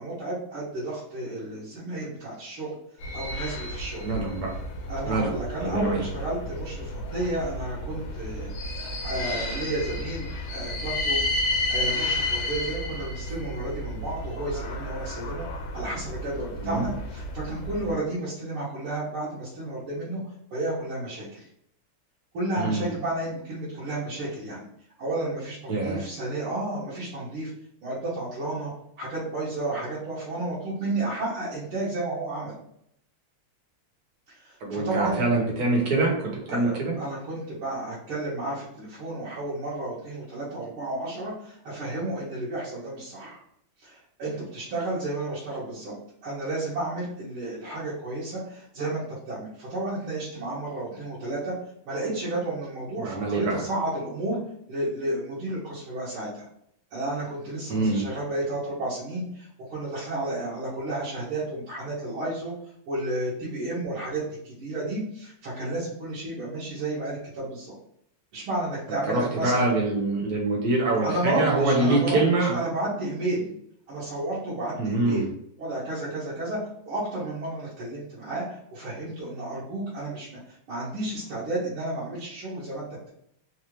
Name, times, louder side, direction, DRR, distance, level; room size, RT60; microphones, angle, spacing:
voice 1, 0.0-2.8 3.1-4.0 4.9-11.2 11.7-15.5 15.7-20.2 20.5-21.5 22.3-24.6 25.0-27.5 27.8-28.7 29.0-32.5 34.3-35.2 36.5-43.4 43.8-45.9 46.2-51.5 51.9-54.4 54.7-56.5 56.9-62.5 62.9-67.7 68.3-69.7 71.0-73.5 73.9-75.3 75.6-76.6 76.9-83.1, right 2 dB, 75° right, -9 dB, 1.8 m, -32 dB
sound 1, 3.0-17.9, left 1 dB, 75° left, 1.6 m, -32 dB
voice 2, 4.0-4.5 5.0-6.0 16.6-16.8 22.6-22.9 25.7-26.0 34.6-36.9 53.0-53.5 57.7-58.0 69.1-72.6 74.8-75.3, right 2 dB, 50° right, -2 dB, 1.3 m, -24 dB
4.2 x 2.4 x 3.0 m, 0.71 s
omnidirectional pair, 2.4 m